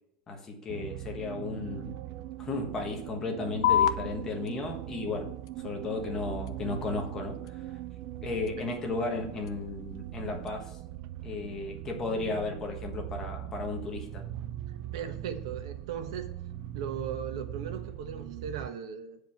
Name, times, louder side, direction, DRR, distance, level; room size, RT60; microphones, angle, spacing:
voice 1, 0.3-1.9 2.4-5.3 5.6-7.4 8.2-10.8 11.2-14.2, left 3 dB, 15° left, 2 dB, 1.3 m, -34 dB
sound 1, 0.7-18.7, right 13 dB, 40° right, 0.4 m, -40 dB
sound 2, 3.6-10.6, left 10 dB, 70° left, 0.6 m, -34 dB
voice 2, 14.9-16.3 16.7-19.2, right 7 dB, 65° right, 7 dB, 1.3 m, -37 dB
9.1 x 5.0 x 5.9 m, 0.79 s
supercardioid pair, 175°, 3 cm